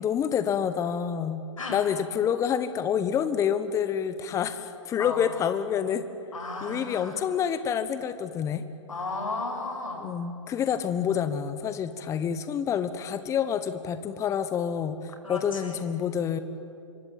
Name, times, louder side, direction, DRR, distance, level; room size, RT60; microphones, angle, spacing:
voice 1, 0.0-1.4 1.7-6.0 6.6-8.6 10.0-16.4, left 8 dB, 20° left, 11 dB, 1.1 m, -28 dB
voice 2, 6.3-7.2 8.9-10.1 15.2-15.8, left 3 dB, 80° left, 2 dB, 7.1 m, -34 dB
26.5 x 23.5 x 9.4 m, 2.7 s
figure-of-eight pair, 120°, 17 cm